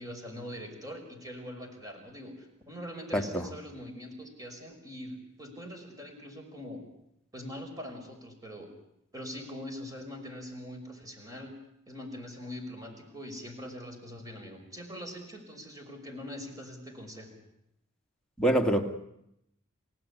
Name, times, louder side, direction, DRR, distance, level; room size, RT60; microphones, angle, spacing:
voice 1, 0.0-6.8 7.3-8.7 9.1-11.5 11.9-17.4, equal, 15° right, 3 dB, 5.8 m, -43 dB
voice 2, 3.1-3.5 18.4-18.8, right 1 dB, 5° left, 3 dB, 2.1 m, -25 dB
29.0 x 17.5 x 9.9 m, 0.81 s
head